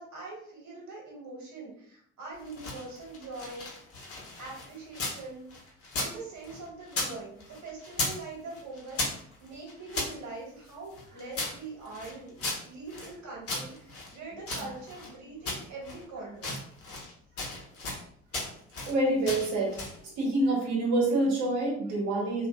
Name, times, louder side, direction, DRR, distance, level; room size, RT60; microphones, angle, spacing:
voice 1, 0.0-3.9 4.4-5.7 6.0-12.3 12.6-16.6, right 3 dB, 50° right, -3 dB, 1.4 m, -43 dB
sound 1, 2.4-5.2 5.5-7.1 7.4-8.2 8.5-10.1 10.7-13.1 13.5-15.1 15.5-16.0 16.3-17.1 17.4-18.0 18.3-18.9 19.3-20.0, left 2 dB, 40° left, 1.0 m, -36 dB
voice 2, 18.9-19.8 20.2-22.5, right 2 dB, 75° right, -2 dB, 1.0 m, -26 dB
2.6 x 2.5 x 2.3 m, 0.65 s
hypercardioid pair, 55°, 35 cm